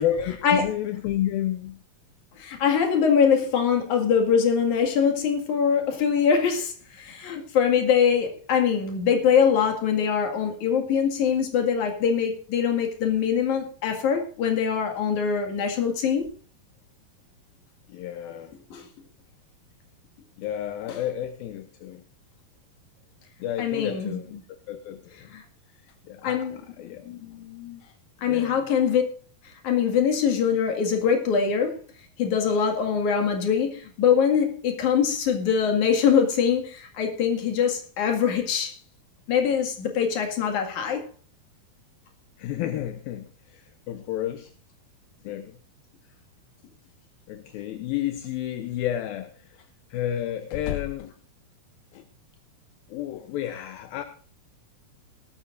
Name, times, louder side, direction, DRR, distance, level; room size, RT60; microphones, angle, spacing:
voice 1, 0.0-1.8 17.9-18.5 20.4-22.0 23.4-24.3 24.7-25.3 26.1-26.5 26.8-27.0 27.8-27.9 28.2-28.6 42.4-44.5 45.2-45.6 47.3-51.1 51.9-52.0 52.9-54.0, left 11 dB, 80° left, 2.5 m, -31 dB
voice 2, 2.4-16.3 18.7-18.9 23.6-24.2 25.3-25.4 26.2-26.6 27.1-27.8 28.2-29.0 29.4-31.8 32.2-38.7 39.3-41.1, left 7 dB, 55° left, 3.2 m, -23 dB
18.5 x 13.5 x 2.6 m
omnidirectional pair, 4.3 m